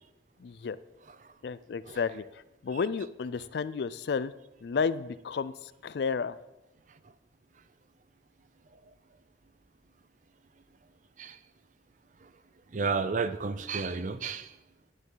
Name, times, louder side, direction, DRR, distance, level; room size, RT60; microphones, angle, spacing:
voice 1, 0.4-0.8 1.4-2.2 2.6-4.3 4.6-5.5 5.8-6.4, left 5 dB, 60° left, 16 dB, 0.4 m, -31 dB
voice 2, 12.7-14.5, right 4 dB, 40° right, 13 dB, 0.5 m, -31 dB
9.5 x 9.5 x 3.9 m, 0.99 s
head